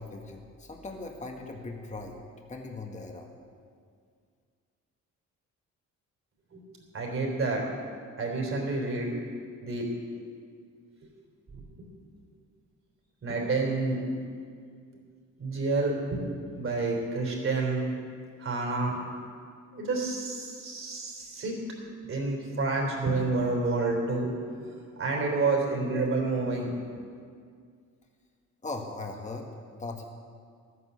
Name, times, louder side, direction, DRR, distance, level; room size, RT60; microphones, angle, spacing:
voice 1, 0.0-2.2 2.5-3.3 28.6-30.1, left 3 dB, 25° left, 2 dB, 1.8 m, -39 dB
voice 2, 6.9-7.6 8.2-9.1 9.6-9.9 11.5-11.9 13.2-14.0 15.4-16.2 16.6-18.1 18.4-19.0 19.7-21.6 22.1-24.3 24.6-24.7 25.0-26.7, right 3 dB, 45° right, 0 dB, 3.8 m, -29 dB
13.0 x 9.7 x 7.0 m, 2.1 s
cardioid pair, 90°, 30 cm